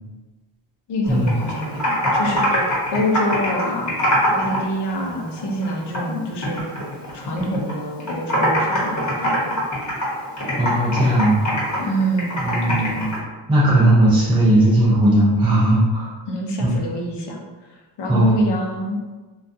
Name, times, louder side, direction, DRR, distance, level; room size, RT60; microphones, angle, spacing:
voice 1, 0.9-3.9 4.3-6.6 7.1-9.6 11.8-13.0 16.3-17.4 18.0-19.0, equal, 60° left, 0 dB, 0.6 m, -26 dB
Computer keyboard, 1.0-4.6 4.9-6.1 6.4-7.7 8.0-13.2, equal, 35° left, 1.0 m, -23 dB
voice 2, 10.6-11.9 12.4-13.1 13.5-16.1 16.6-16.7 18.1-18.4, right 1 dB, 10° right, -7 dB, 0.5 m, -17 dB
2.3 x 2.2 x 2.6 m, 1.3 s
cardioid pair, 95°, 48 cm